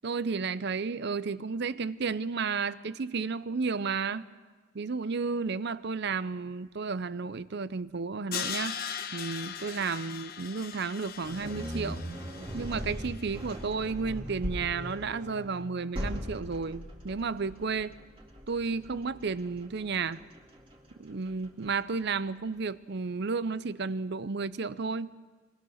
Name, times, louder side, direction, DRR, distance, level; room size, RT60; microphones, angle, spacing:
voice 1, 0.0-4.3 4.7-8.8 9.1-12.0 12.5-17.9 18.5-20.2 21.0-25.1, right 4 dB, 50° right, 16 dB, 0.6 m, -32 dB
Crash cymbal, 8.3-13.4, left 7 dB, 45° left, 1.1 m, -39 dB
sound 1, 11.2-22.4, equal, 25° right, 2.4 m, -40 dB
24.5 x 19.5 x 6.5 m, 1.4 s
head